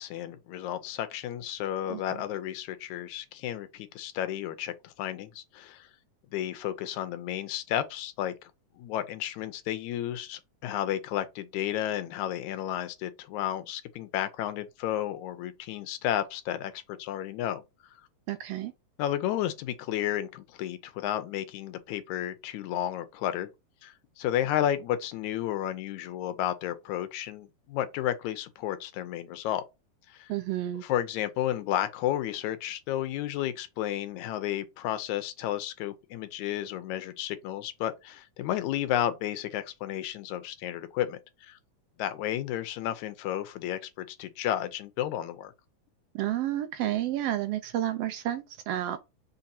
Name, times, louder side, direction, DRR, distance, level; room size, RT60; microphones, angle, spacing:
voice 1, 0.0-5.9 6.3-8.3 8.8-17.6 19.0-23.5 23.8-29.6 30.1-30.3 30.8-41.6 42.0-45.5, left 12 dB, 80° left, 2.0 m, -32 dB
voice 2, 18.3-18.7 30.3-30.8 46.1-49.0, right 13 dB, 90° right, 1.3 m, -30 dB
5.8 x 3.4 x 2.7 m
omnidirectional pair, 3.4 m